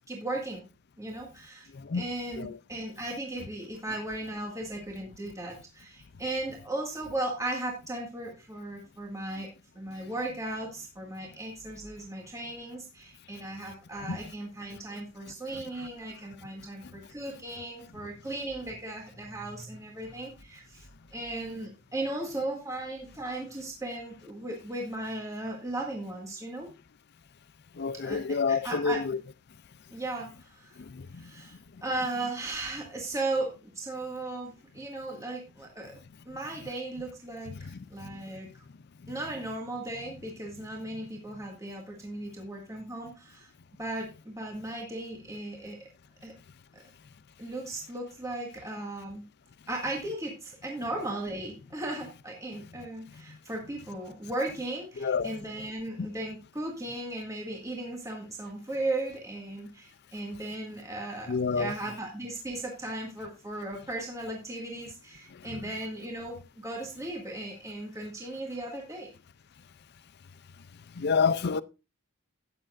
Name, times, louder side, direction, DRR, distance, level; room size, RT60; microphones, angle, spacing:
voice 1, 0.1-0.6 1.0-1.7 1.9-9.5 9.8-20.9 21.1-26.7 28.0-29.0 29.9-30.8 31.2-36.0 36.3-38.6 39.1-43.5 43.8-45.8 46.2-46.3 46.7-46.8 47.4-49.3 49.7-69.1, right 2 dB, 15° right, 1.9 m, -36 dB
voice 2, 1.7-2.1 2.4-2.6 14.0-14.2 15.5-15.6 16.8-16.9 27.7-29.2 30.8-31.3 31.7-31.8 37.5-38.5 39.0-39.1 53.3-53.4 55.0-55.4 56.0-56.1 61.3-61.7 65.3-65.7 70.9-71.6, left 5 dB, 50° left, 0.5 m, -30 dB
13.0 x 9.0 x 2.5 m
head